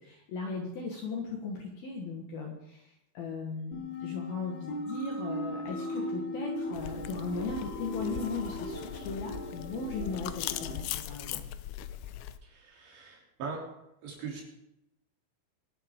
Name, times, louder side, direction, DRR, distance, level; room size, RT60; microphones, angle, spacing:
voice 1, 0.0-11.4, left 3 dB, 60° left, 0 dB, 2.7 m, -37 dB
sound 1, 3.7-10.7, left 1 dB, 35° left, 4.0 m, -38 dB
sound 2, 6.7-12.4, left 12 dB, 90° left, 2.6 m, -40 dB
voice 2, 12.4-13.7 14.0-14.4, right 5 dB, 60° right, -2 dB, 5.2 m, -40 dB
23.5 x 11.0 x 3.7 m, 0.86 s
omnidirectional pair, 5.9 m